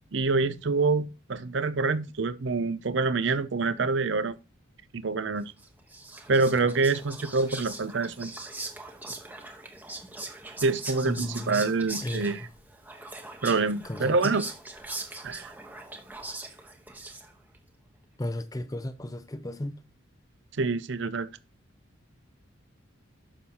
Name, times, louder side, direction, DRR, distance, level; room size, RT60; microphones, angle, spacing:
voice 1, 0.1-4.4 4.9-5.5 6.3-8.3 10.6-12.5 13.4-14.4 15.2-15.5 20.6-21.3, right 3 dB, 60° right, 0.6 m, -26 dB
Whispering, 5.6-17.6, right 2 dB, 10° right, 1.1 m, -41 dB
voice 2, 11.0-11.7 12.0-12.5 13.8-14.4 18.2-19.8, left 1 dB, 15° left, 0.5 m, -35 dB
12.5 x 6.4 x 2.9 m
head